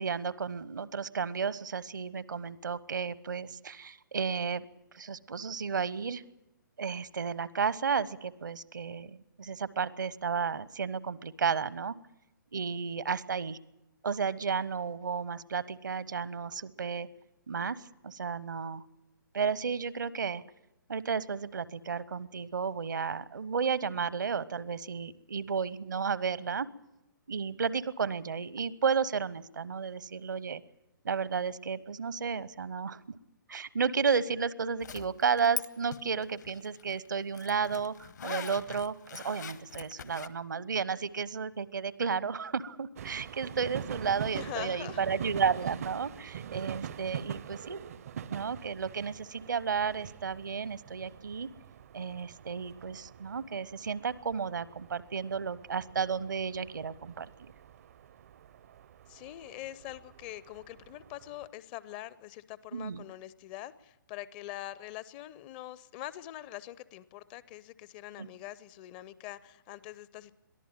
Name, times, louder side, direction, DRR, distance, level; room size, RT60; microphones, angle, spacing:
voice 1, 0.0-4.7 4.9-6.2 6.8-12.0 12.5-13.6 14.0-17.1 17.5-18.8 19.3-20.4 20.9-26.7 27.3-30.6 31.0-33.0 33.5-47.8 48.3-51.5 51.9-57.3 62.7-63.0 68.2-68.3, right 6 dB, 65° right, 19 dB, 1.0 m, -33 dB
Zipper (clothing), 34.8-35.7 35.9-40.3, left 6 dB, 55° left, 1.2 m, -41 dB
sound 1, 43.0-61.5, right 8 dB, 45° right, 0.7 m, -44 dB
voice 2, 44.3-45.0 59.1-70.4, left 14 dB, 25° left, 18 dB, 0.6 m, -44 dB
22.5 x 14.0 x 9.1 m, 0.91 s
figure-of-eight pair, 130°, 11 cm